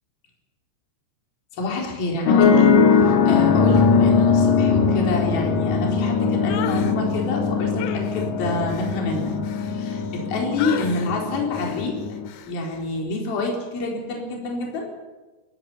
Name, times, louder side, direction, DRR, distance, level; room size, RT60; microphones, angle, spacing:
voice 1, 1.5-9.3 9.6-12.0 12.5-14.9, left 2 dB, 45° left, -1 dB, 5.8 m, -27 dB
sound 1, 2.3-12.3, left 5 dB, 65° left, 1.9 m, -20 dB
sound 2, 6.5-7.0 7.8-10.2 10.6-11.1 11.5-11.9 12.3-12.5, left 10 dB, 90° left, 4.2 m, -35 dB
28.0 x 14.5 x 8.6 m, 1.2 s
omnidirectional pair, 5.9 m